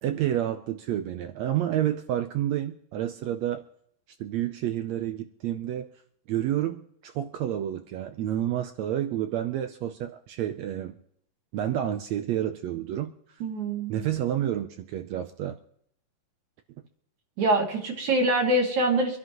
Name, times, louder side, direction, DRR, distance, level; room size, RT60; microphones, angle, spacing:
voice 1, 0.0-3.6 4.2-5.9 6.3-10.9 11.5-13.1 13.9-15.6, right 11 dB, 80° right, 8 dB, 1.5 m, -29 dB
voice 2, 13.4-14.0 17.4-19.2, right 2 dB, 60° right, -1 dB, 3.4 m, -24 dB
26.0 x 11.0 x 3.0 m, 0.68 s
omnidirectional pair, 3.9 m